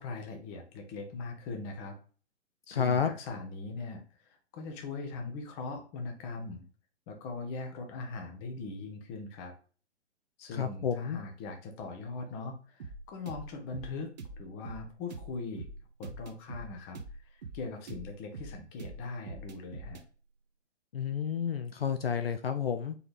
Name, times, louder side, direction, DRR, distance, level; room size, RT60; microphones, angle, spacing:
voice 1, 0.0-1.9 2.7-6.6 7.1-9.5 10.4-15.7 16.0-20.0, left 3 dB, 20° left, 4 dB, 0.7 m, -41 dB
voice 2, 2.7-3.1 10.5-11.2 20.9-23.0, left 7 dB, 55° left, 8 dB, 0.5 m, -30 dB
sound 1, 12.8-20.1, right 3 dB, 40° right, 0.6 m, -45 dB
4.6 x 3.2 x 3.3 m, 0.40 s
figure-of-eight pair, 125°, 36 cm